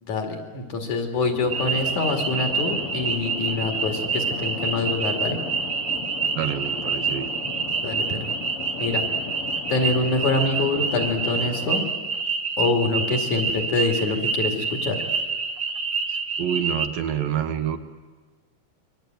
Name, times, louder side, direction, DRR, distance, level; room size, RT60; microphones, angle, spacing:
voice 1, 0.0-5.4 7.8-8.3 8.8-9.1 9.7-11.9 12.6-15.0, left 3 dB, 55° left, 4 dB, 3.7 m, -25 dB
sound 1, 1.2-11.7, left 8 dB, 90° left, 1.2 m, -37 dB
sound 2, 1.5-16.9, right 5 dB, 40° right, 1.4 m, -27 dB
voice 2, 6.3-7.3 16.1-17.8, right 9 dB, 75° right, 8 dB, 2.8 m, -27 dB
27.5 x 23.5 x 9.1 m, 1.3 s
omnidirectional pair, 4.3 m